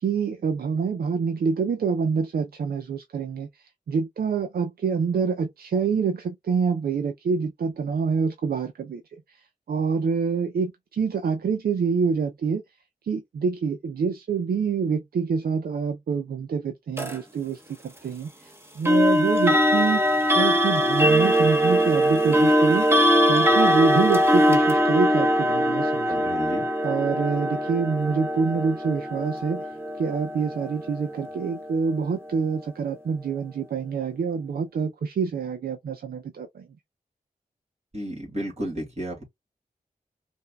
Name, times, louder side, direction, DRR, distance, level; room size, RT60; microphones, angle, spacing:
voice 1, 0.0-9.0 9.3-12.6 13.0-22.9 23.3-26.2 26.8-29.7 30.0-36.7, right 5 dB, 85° right, 0.6 m, -26 dB
sound 1, 17.0-17.2 18.9-31.7, equal, 15° right, 1.1 m, -21 dB
voice 2, 26.1-26.7 37.9-39.2, right 1 dB, 45° right, 2.6 m, -32 dB
5.4 x 2.7 x 2.2 m
cardioid pair, 50°, 15 cm